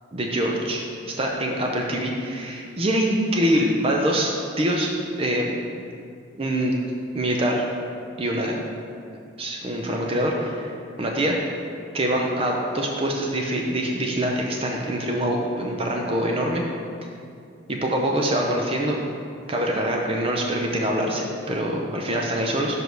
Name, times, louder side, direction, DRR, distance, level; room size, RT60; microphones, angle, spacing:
voice 1, 0.1-0.8 1.2-4.9 5.2-5.6 6.4-6.8 7.1-7.6 8.2-8.6 9.4-10.7 11.0-11.4 11.9-16.6 17.7-19.0 19.5-22.8, right 1 dB, 30° right, 0 dB, 0.5 m, -24 dB
5.2 x 4.6 x 6.3 m, 2.4 s
head